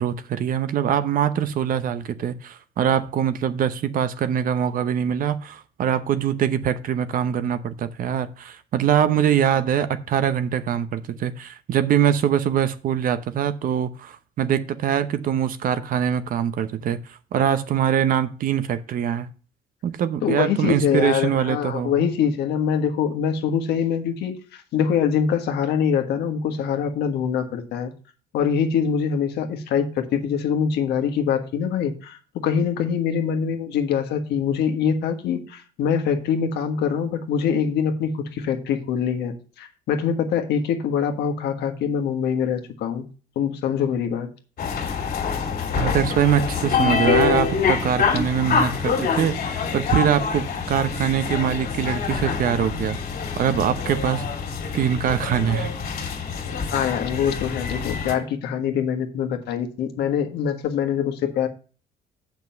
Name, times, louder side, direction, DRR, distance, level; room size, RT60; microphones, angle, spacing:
voice 1, 0.0-17.0 17.3-19.3 19.8-21.9 45.8-53.0 53.4-54.2 54.7-55.7, right 9 dB, 55° right, 12 dB, 0.9 m, -23 dB
voice 2, 20.2-27.9 28.3-43.1 43.3-44.3 56.7-61.5, left 7 dB, 75° left, 6 dB, 1.5 m, -24 dB
sound 1, 44.6-58.1, left 6 dB, 55° left, 2.4 m, -25 dB
7.6 x 5.9 x 5.8 m, 0.37 s
cardioid pair, 110°, 17 cm